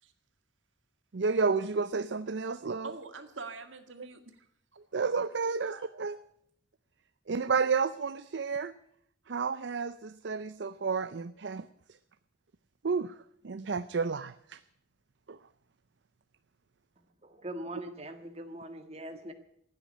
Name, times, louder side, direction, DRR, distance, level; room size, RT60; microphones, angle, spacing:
voice 1, 1.1-2.9 4.9-5.7 6.0-6.2 7.3-8.7 9.3-11.7 12.8-13.1 13.4-14.6 15.3-15.4, right 5 dB, 65° right, 12 dB, 0.5 m, -31 dB
voice 2, 2.8-4.5 5.6-6.0, right 4 dB, 85° right, 7 dB, 1.9 m, -44 dB
voice 3, 17.2-19.3, right 1 dB, 35° right, 6 dB, 1.6 m, -42 dB
15.0 x 9.5 x 9.8 m, 0.70 s
head